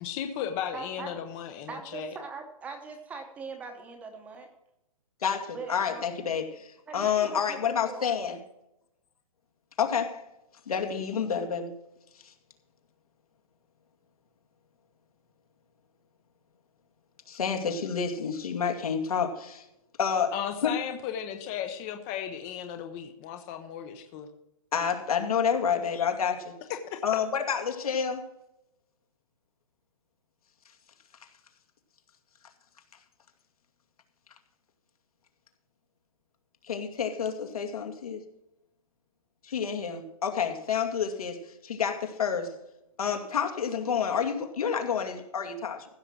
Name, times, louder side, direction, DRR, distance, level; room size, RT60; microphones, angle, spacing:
voice 1, 0.0-2.2 20.3-24.3 26.7-26.8 27.1-27.2, left 9 dB, 15° left, 0.6 m, -35 dB
voice 2, 0.7-1.1 1.7-4.5 5.5-6.1 6.9-8.2, right 4 dB, 10° right, 0.9 m, -41 dB
voice 3, 5.2-8.4 9.8-10.2 10.7-11.7 12.2-12.3 17.3-19.6 20.0-20.7 24.7-26.5 27.0-28.3 36.6-38.2 39.4-42.5 43.0-45.9, left 7 dB, 85° left, 2.4 m, -29 dB
15.0 x 6.5 x 6.0 m
hypercardioid pair, 170°, 18 cm